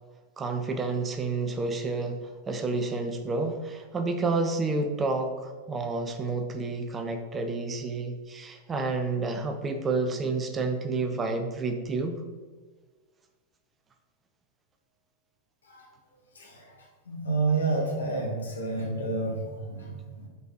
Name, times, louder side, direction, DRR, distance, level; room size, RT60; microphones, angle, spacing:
voice 1, 0.4-12.2, right 3 dB, 20° right, 5 dB, 0.6 m, -30 dB
voice 2, 16.3-20.3, right 3 dB, 70° left, 0 dB, 1.5 m, -30 dB
5.3 x 4.1 x 4.7 m, 1.4 s
figure-of-eight pair, 90°, 0 cm